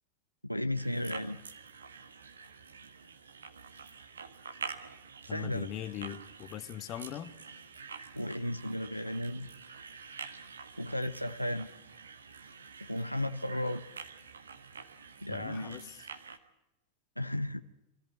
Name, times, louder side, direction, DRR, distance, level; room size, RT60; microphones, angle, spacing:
voice 1, 0.4-1.4 5.2-5.7 8.1-9.5 10.8-11.7 12.9-13.9 15.2-15.8 17.2-17.6, left 1 dB, 90° left, 0.7 m, -34 dB
sound 1, 0.7-16.4, right 5 dB, 70° right, 1.4 m, -47 dB
voice 2, 5.3-7.3 15.3-16.0, left 11 dB, 35° left, 1.1 m, -41 dB
23.0 x 14.0 x 9.4 m
figure-of-eight pair, 90°, 0 cm